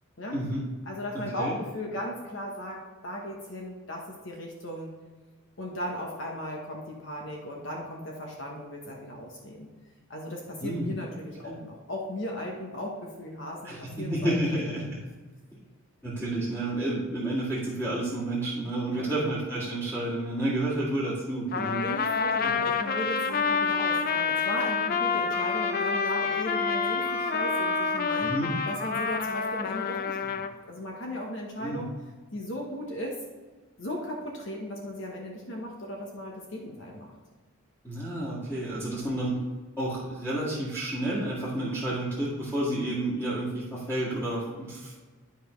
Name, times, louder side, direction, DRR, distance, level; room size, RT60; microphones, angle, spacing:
voice 1, 0.3-0.6 1.1-1.6 10.6-10.9 11.4-11.6 13.6-14.9 16.0-21.8 22.4-22.5 28.2-28.5 31.6-31.8 37.8-39.4 39.8-44.9, right 1 dB, 10° left, -11 dB, 1.8 m, -30 dB
voice 2, 0.9-4.9 5.6-9.7 10.1-14.3 14.6-14.8 18.9-19.3 21.8-28.3 28.7-31.9 32.3-33.2 33.8-37.1, left 1 dB, 55° left, -1 dB, 1.1 m, -36 dB
Trumpet, 21.5-30.5, left 5 dB, 40° left, 0.4 m, -28 dB
Wind instrument woodwind instrument, 25.3-29.7, right 4 dB, 55° right, 1.1 m, -39 dB
11.5 x 5.2 x 3.1 m, 1.3 s
head